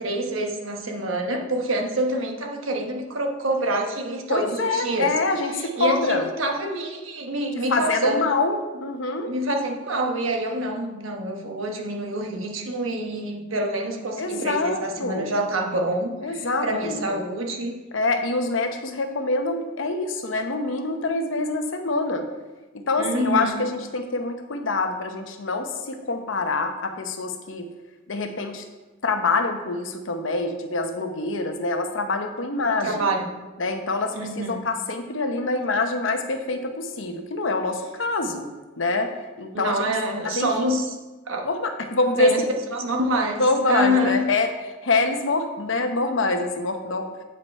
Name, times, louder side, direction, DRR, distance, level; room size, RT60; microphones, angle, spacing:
voice 1, 0.0-5.1 5.6-8.3 9.3-17.8 23.0-23.6 32.8-33.4 34.1-34.7 39.5-41.0 41.3-41.5 42.2-42.4 42.7-44.3, right 1 dB, 85° right, 2 dB, 1.1 m, -26 dB
voice 2, 4.3-6.3 7.6-9.3 14.2-15.4 16.2-17.2 17.9-22.2 22.7-27.7 28.1-28.6 29.0-33.1 33.6-38.5 38.8-39.1 39.4-39.8 40.2-40.7 41.4-42.5 43.4-44.5 44.8-47.1, left 3 dB, 70° left, 6 dB, 0.8 m, -25 dB
8.4 x 5.1 x 4.1 m, 1.2 s
head